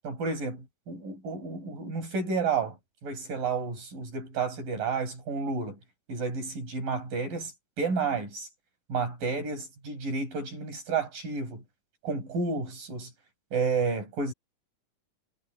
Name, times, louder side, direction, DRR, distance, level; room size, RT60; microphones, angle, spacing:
voice 1, 0.0-2.8 3.0-5.8 6.1-7.5 7.8-8.5 8.9-11.6 12.0-13.1 13.5-14.3, right 4 dB, 80° right, 8.7 m, -31 dB
omnidirectional pair, 3.8 m